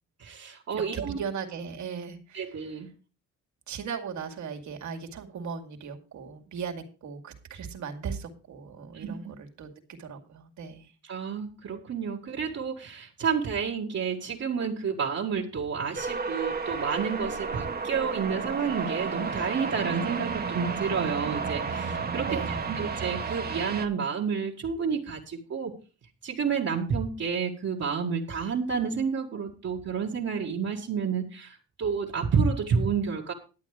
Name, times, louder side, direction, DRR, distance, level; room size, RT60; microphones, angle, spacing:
voice 1, 0.2-1.2 2.3-2.9 8.9-9.3 11.0-25.7 26.2-33.3, right 6 dB, 55° right, -4 dB, 1.9 m, -30 dB
voice 2, 0.7-2.7 3.7-9.7 10.0-10.9 22.3-22.8, right 6 dB, 70° right, 3 dB, 2.3 m, -37 dB
sound 1, 15.9-23.9, right 5 dB, 30° right, 1.4 m, -32 dB
11.5 x 8.4 x 4.9 m, 0.35 s
cardioid pair, 90°, 30 cm